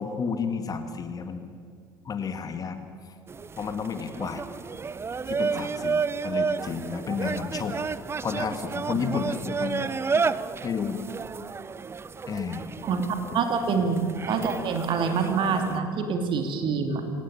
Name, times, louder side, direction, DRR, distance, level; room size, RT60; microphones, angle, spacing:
voice 1, 0.0-1.4 2.1-2.8 3.6-4.4 5.3-7.8 8.2-10.3 10.6-11.0 12.3-12.7, left 6 dB, 30° left, 8 dB, 1.9 m, -31 dB
sound 1, 3.3-15.8, right 5 dB, 20° right, 0.7 m, -31 dB
voice 2, 13.3-14.0 14.3-17.0, right 5 dB, 45° right, 5 dB, 2.8 m, -26 dB
25.0 x 18.0 x 7.2 m, 2.1 s
figure-of-eight pair, 65°, 12 cm